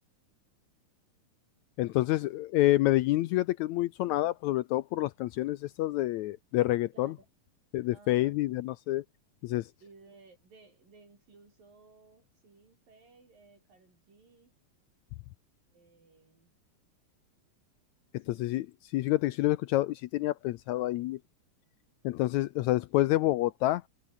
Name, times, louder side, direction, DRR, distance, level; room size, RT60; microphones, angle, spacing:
voice 1, 1.8-7.1 7.7-9.0 9.4-9.7 18.1-18.7 18.9-21.2 22.0-23.8, left 16 dB, 85° left, 1.7 m, -28 dB
voice 2, 6.9-7.3 7.9-8.3 9.8-14.5 15.7-16.5 18.1-18.5, right 3 dB, 85° right, 9.5 m, -58 dB
omnidirectional pair, 3.9 m